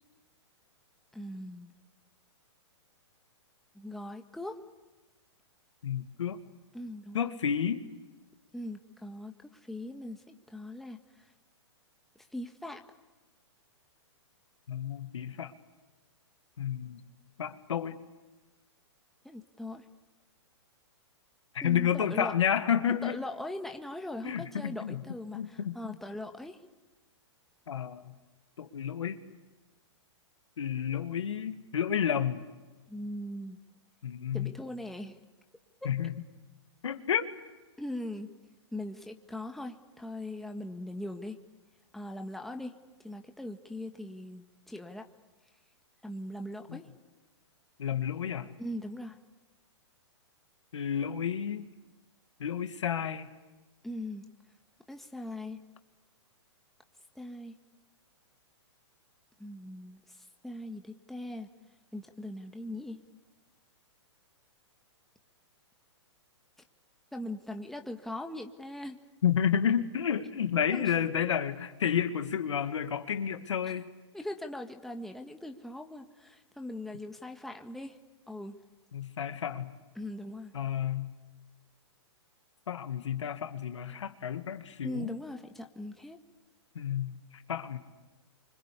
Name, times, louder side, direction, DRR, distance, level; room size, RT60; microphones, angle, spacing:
voice 1, 1.1-1.7 3.7-4.6 6.7-7.3 8.5-11.0 12.3-12.8 19.2-19.9 21.6-22.3 22.9-26.6 32.9-33.6 34.3-35.2 35.8-35.9 37.8-38.3 38.7-41.4 41.9-42.8 43.0-45.1 46.0-46.9 48.6-49.2 53.8-54.2 54.9-55.6 57.1-57.5 59.4-60.2 60.4-61.5 61.9-63.0 67.1-69.0 70.7-70.9 73.7-73.8 74.1-78.0 78.3-78.6 79.9-80.5 84.8-86.2, left 1 dB, ahead, 4 dB, 1.7 m, -40 dB
voice 2, 5.8-6.4 7.1-7.9 14.7-15.5 16.6-17.0 17.4-18.0 21.5-23.2 24.2-25.0 25.3-25.9 27.7-28.0 28.6-29.2 30.6-32.4 34.0-34.5 35.8-36.1 36.8-37.3 46.7-46.8 47.8-48.5 50.7-51.7 52.4-53.3 69.2-73.9 78.9-79.7 80.5-81.1 82.7-85.1 86.8-87.2 87.5-87.8, left 8 dB, 80° left, 8 dB, 2.2 m, -31 dB
25.5 x 25.0 x 8.5 m, 1.2 s
hypercardioid pair, 135°, 15 cm